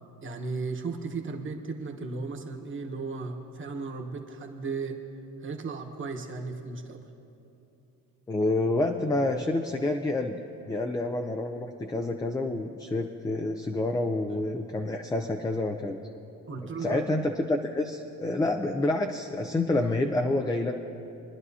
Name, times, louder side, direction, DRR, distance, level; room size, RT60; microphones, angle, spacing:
voice 1, 0.2-5.0 5.4-7.1 16.5-17.0, right 4 dB, 35° right, 3 dB, 1.2 m, -35 dB
voice 2, 8.3-10.4 10.7-16.0 16.8-20.8, left 2 dB, 10° left, 5 dB, 0.4 m, -28 dB
23.5 x 11.0 x 2.8 m, 2.9 s
cardioid pair, 120°, 35 cm